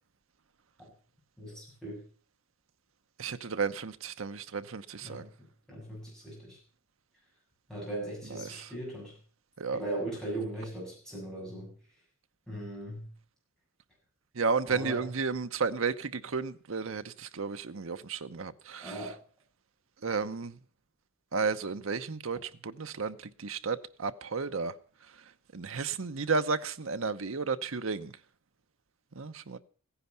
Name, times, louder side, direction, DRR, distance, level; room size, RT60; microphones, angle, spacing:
voice 1, 1.4-2.0 5.0-5.3 5.7-6.6 7.7-9.2 9.7-11.7 12.5-13.1 14.7-15.0 18.8-19.2, right 1 dB, 5° left, 7.5 m, -38 dB
voice 2, 3.2-5.3 8.3-8.7 9.6-9.8 14.4-19.1 20.0-20.6 21.3-24.7 25.5-28.1 29.1-29.6, right 4 dB, 75° right, 0.8 m, -33 dB
15.0 x 10.0 x 6.9 m
head